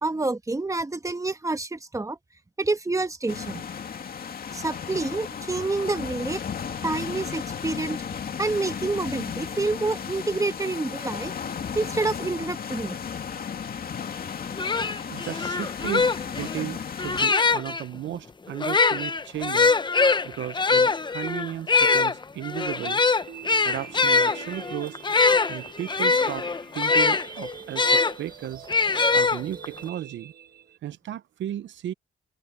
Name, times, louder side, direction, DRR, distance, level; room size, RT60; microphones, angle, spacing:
voice 1, 0.0-2.2 2.6-3.6 4.5-6.4 6.8-8.0 8.4-11.3 11.7-13.0, right 3 dB, 15° right, 1.4 m, -28 dB
sound 1, 3.3-17.3, left 7 dB, 50° left, 2.4 m, -34 dB
sound 2, 14.2-14.3 14.6-17.8 18.5-28.1 28.7-29.8, left 4 dB, 25° left, 0.9 m, -23 dB
voice 2, 15.1-19.7 20.2-23.0 23.6-25.0 25.5-26.5 26.7-28.6 29.1-30.3 30.8-31.9, right 12 dB, 70° right, 0.8 m, -35 dB
sound 3, 22.8-30.8, right 7 dB, 50° right, 1.3 m, -44 dB
open air
cardioid pair, 90°, 20 cm